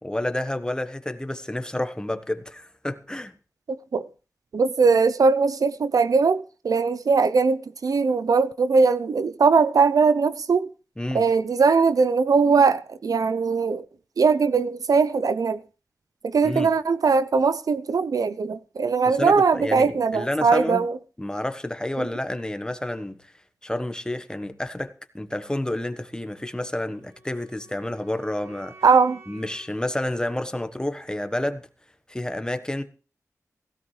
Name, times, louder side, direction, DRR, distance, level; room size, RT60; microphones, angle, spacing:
voice 1, 0.0-3.3 11.0-11.2 16.4-16.7 19.1-20.8 21.2-23.2 23.6-28.7 29.3-31.7 32.1-32.8, left 1 dB, 15° left, 1.3 m, -29 dB
voice 2, 4.5-10.7 11.1-13.8 14.2-15.6 16.2-21.0 28.8-29.2, right 4 dB, 80° right, 0.7 m, -20 dB
Wind instrument woodwind instrument, 26.9-31.0, right 3 dB, 50° right, 6.4 m, -52 dB
17.0 x 15.5 x 3.3 m
wide cardioid pair, 65°, 6 cm